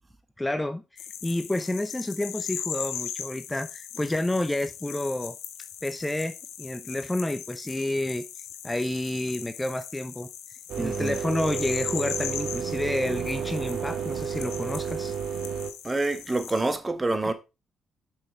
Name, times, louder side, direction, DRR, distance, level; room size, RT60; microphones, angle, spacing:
voice 1, 0.4-5.4 5.8-8.2 8.6-10.3 10.8-15.1 17.2-17.3, left 1 dB, 15° left, 0.7 m, -30 dB
sound 1, 1.0-16.8, left 9 dB, 80° left, 1.0 m, -39 dB
sound 2, 10.7-15.7, right 7 dB, 75° right, 1.3 m, -32 dB
voice 2, 10.8-11.2 15.8-17.3, right 2 dB, 25° right, 1.5 m, -27 dB
6.5 x 6.3 x 4.5 m
supercardioid pair, 50°, 0 cm